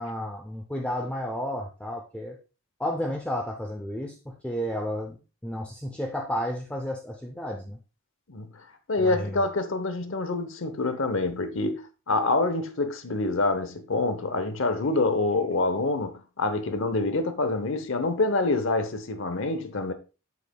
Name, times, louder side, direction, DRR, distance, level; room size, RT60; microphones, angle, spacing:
voice 1, 0.0-2.4 2.8-7.8 9.0-9.5, equal, 5° left, 0.7 m, -32 dB
voice 2, 8.9-19.9, left 2 dB, 60° left, 0.9 m, -26 dB
8.2 x 7.3 x 2.3 m
head